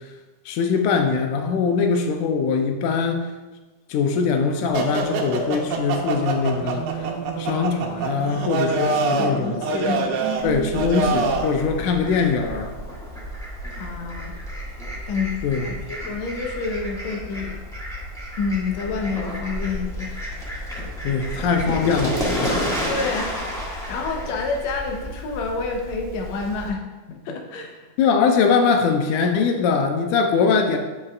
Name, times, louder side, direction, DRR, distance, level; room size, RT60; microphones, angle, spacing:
voice 1, 0.5-3.3 3.9-7.1 7.4-9.7 10.4-12.7 15.4-15.8 21.0-22.7 28.0-30.8, left 5 dB, 90° left, 5 dB, 2.1 m, -22 dB
sound 1, 4.7-11.5, right 4 dB, 80° right, 2.2 m, -25 dB
voice 2, 9.2-10.1 13.8-14.4 15.1-15.3 15.6-17.6 18.4-20.1 22.9-23.4 23.7-26.8 27.1-27.9, left 4 dB, 70° left, 2 dB, 2.0 m, -28 dB
Fowl, 10.4-26.7, equal, 5° left, 0.7 m, -31 dB
9.4 x 7.3 x 2.4 m, 1.2 s
omnidirectional pair, 3.5 m